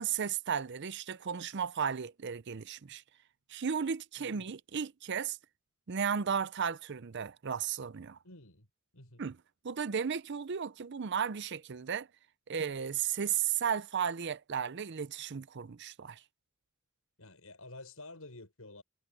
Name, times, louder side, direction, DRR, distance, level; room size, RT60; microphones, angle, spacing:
voice 1, 0.0-3.0 3.5-5.4 5.9-8.2 9.2-9.4 9.6-12.1 12.5-16.2, right 7 dB, 55° right, 0.6 m, -34 dB
voice 2, 4.2-4.5 8.2-8.7 8.9-9.2 17.2-18.8, left 2 dB, 80° left, 5.9 m, -50 dB
head